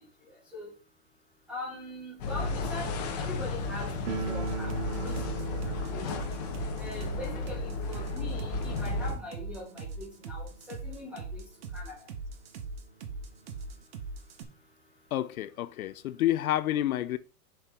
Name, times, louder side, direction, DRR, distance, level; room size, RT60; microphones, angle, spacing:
voice 1, 1.5-2.9 3.2-3.9 4.2-5.4 5.9-6.1 6.8-10.5 10.8-11.4 11.7-12.0, left 1 dB, 5° right, 0.6 m, -41 dB
sound 1, 2.2-9.1, left 3 dB, 25° left, 0.8 m, -33 dB
sound 2, 4.1-10.8 11.0-11.1 11.4-11.5 12.2-12.3 12.6-13.8, right 6 dB, 70° right, 1.4 m, -42 dB
sound 3, 4.5-14.4, right 3 dB, 40° right, 1.0 m, -40 dB
voice 2, 15.1-17.2, left 13 dB, 65° left, 0.6 m, -29 dB
6.9 x 5.7 x 3.5 m
supercardioid pair, 175°, 47 cm